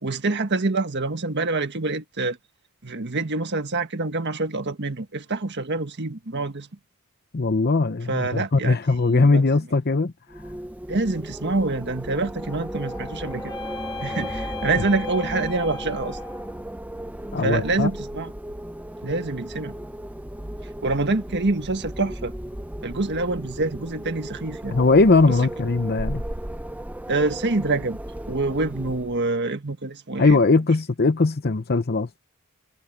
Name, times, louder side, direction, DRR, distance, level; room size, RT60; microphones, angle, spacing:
voice 1, 0.0-2.4 2.8-6.7 8.1-8.8 9.1-9.4 10.9-13.5 14.0-16.2 17.4-18.3 19.0-19.8 20.8-22.3 22.8-24.8 27.1-28.0 28.3-30.4, right 3 dB, 55° right, 1.6 m, -26 dB
voice 2, 7.3-10.4 17.3-17.9 24.7-26.2 30.2-32.1, left 3 dB, 50° left, 0.8 m, -20 dB
Wind, 10.3-29.3, right 1 dB, 5° right, 0.7 m, -35 dB
sound 1, 12.3-16.6, left 4 dB, 20° left, 1.9 m, -38 dB
head